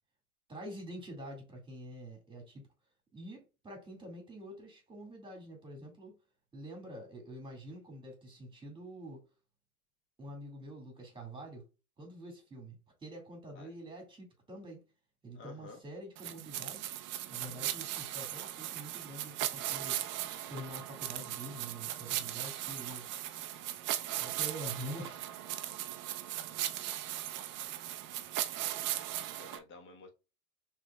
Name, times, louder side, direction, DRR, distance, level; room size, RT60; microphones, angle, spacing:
voice 1, 0.5-2.7 3.1-6.2 6.5-9.3 10.2-11.7 12.0-14.8 15.2-16.9 17.3-20.0 20.5-23.1 24.1-25.2, right 1 dB, 10° right, 2.0 m, -46 dB
voice 2, 15.3-15.8 29.3-30.1, left 3 dB, 25° left, 1.3 m, -51 dB
sound 1, 16.2-29.6, right 13 dB, 30° right, 0.4 m, -38 dB
6.2 x 3.3 x 2.3 m
hypercardioid pair, 105°, 44 cm